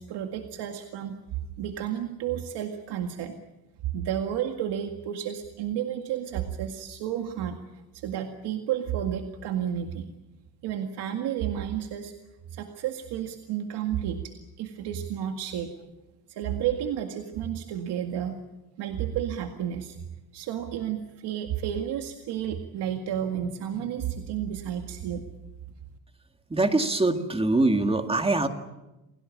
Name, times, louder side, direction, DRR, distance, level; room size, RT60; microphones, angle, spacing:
voice 1, 0.0-3.4 3.9-7.6 7.9-10.1 10.6-12.1 12.5-15.7 16.3-18.4 18.8-20.0 20.3-25.2, right 10 dB, 90° right, 4 dB, 2.0 m, -31 dB
voice 2, 26.5-28.5, right 2 dB, 15° right, 6 dB, 2.1 m, -23 dB
28.5 x 18.0 x 8.6 m, 1.0 s
cardioid pair, 135°, 39 cm